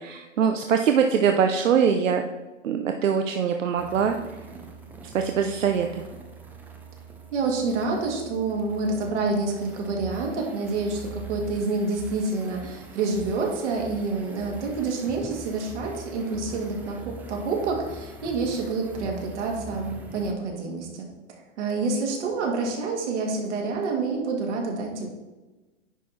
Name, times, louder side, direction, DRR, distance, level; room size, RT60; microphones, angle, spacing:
voice 1, 0.0-2.3 2.6-4.2 5.1-6.0, right 7 dB, 85° right, 6 dB, 0.7 m, -23 dB
sound 1, 3.8-20.3, right 3 dB, 5° right, 0.3 m, -43 dB
voice 2, 7.3-21.1 21.6-25.1, right 3 dB, 65° right, 0 dB, 2.4 m, -28 dB
9.8 x 4.8 x 4.2 m, 1.1 s
hypercardioid pair, 120°, 37 cm